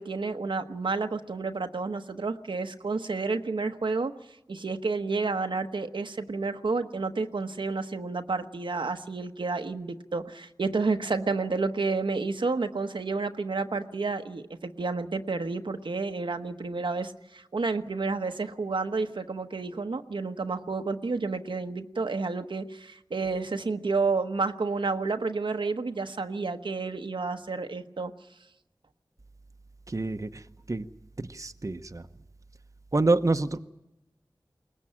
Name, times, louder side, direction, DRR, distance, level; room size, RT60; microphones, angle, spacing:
voice 1, 0.0-4.1 4.5-28.1, right 4 dB, 85° right, 6 dB, 1.1 m, -30 dB
voice 2, 29.9-30.4 30.7-30.8 31.2-32.1 32.9-33.6, right 3 dB, 40° right, 8 dB, 0.9 m, -27 dB
22.0 x 19.5 x 8.8 m, 0.91 s
wide cardioid pair, 50°, 8 cm